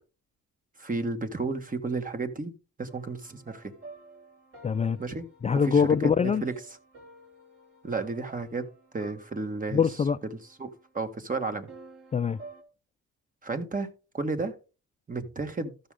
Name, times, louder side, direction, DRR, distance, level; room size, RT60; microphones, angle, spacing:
voice 1, 0.8-2.5 2.8-3.7 5.0-5.3 5.6-5.9 6.2-6.5 7.8-8.7 8.9-9.8 10.6-11.7 13.4-13.9 14.1-14.5 15.1-15.7, right 3 dB, 25° right, 1.7 m, -32 dB
sound 1, 2.9-10.9 11.7-12.6, right 3 dB, 45° right, 3.1 m, -50 dB
voice 2, 4.6-5.0 5.4-6.4 9.7-10.2 12.1-12.4, left 6 dB, 25° left, 0.4 m, -23 dB
13.5 x 6.4 x 3.7 m
cardioid pair, 90°, 30 cm